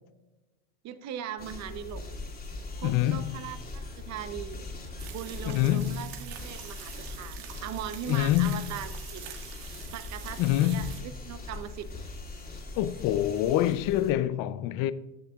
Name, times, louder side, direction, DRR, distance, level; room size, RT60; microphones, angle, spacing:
voice 1, 0.8-2.0 2.8-4.6 5.0-9.2 9.9-11.9 12.3-12.4, right 10 dB, 35° right, 0.8 m, -39 dB
sound 1, 1.4-14.1, left 3 dB, 20° left, 2.5 m, -41 dB
voice 2, 2.8-3.3 5.5-6.0 8.1-8.6 10.4-10.9 12.8-14.9, left 13 dB, 45° left, 0.5 m, -26 dB
sound 2, 5.0-11.0, right 10 dB, 60° right, 1.7 m, -45 dB
14.5 x 6.8 x 2.4 m
supercardioid pair, 120°, 48 cm